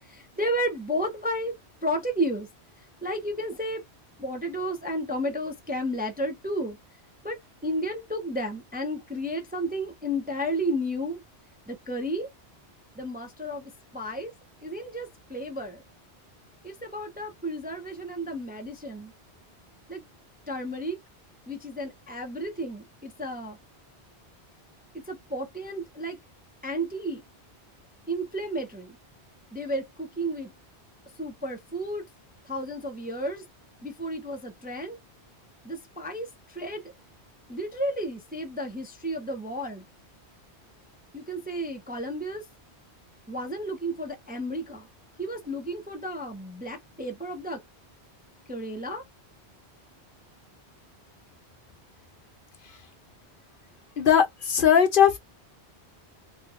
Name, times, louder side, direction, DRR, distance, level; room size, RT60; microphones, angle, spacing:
voice 1, 0.0-2.5 3.0-3.8 4.2-6.8 7.2-11.2 11.7-12.3 13.0-14.3 14.6-15.8 16.6-19.1 19.9-20.0 20.5-21.0 21.5-23.6 25.1-26.2 26.6-27.2 28.1-29.0 29.5-30.5 31.2-32.1 32.4-33.4 33.8-35.0 35.6-36.9 37.5-39.8 41.1-42.4 43.3-44.9 45.2-47.6 48.5-49.0, equal, 10° right, 0.5 m, -32 dB
voice 2, 54.0-55.2, left 8 dB, 55° left, 0.8 m, -19 dB
3.4 x 2.9 x 2.4 m
omnidirectional pair, 1.1 m